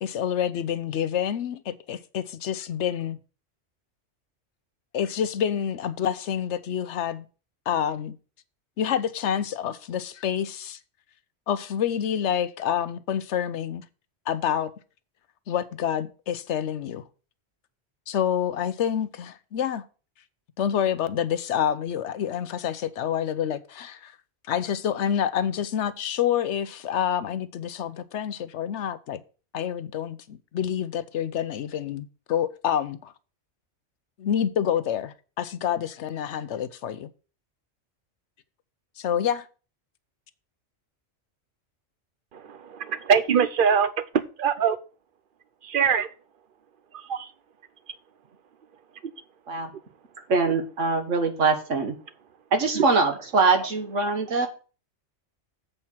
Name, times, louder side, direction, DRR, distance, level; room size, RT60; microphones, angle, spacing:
voice 1, 0.0-3.2 4.9-7.3 7.7-8.2 8.8-10.8 11.5-13.8 14.3-14.7 15.5-17.1 18.1-19.8 20.6-24.2 24.5-29.2 29.5-33.1 34.2-37.1 39.0-39.5, left 9 dB, 75° left, 1.0 m, -28 dB
voice 2, 42.3-44.8 45.6-46.1 46.9-47.3 52.7-52.9, right 7 dB, 50° right, 0.8 m, -23 dB
voice 3, 50.3-52.0 52.5-54.5, right 4 dB, 90° right, 1.8 m, -23 dB
7.9 x 4.5 x 7.1 m
omnidirectional pair, 1.2 m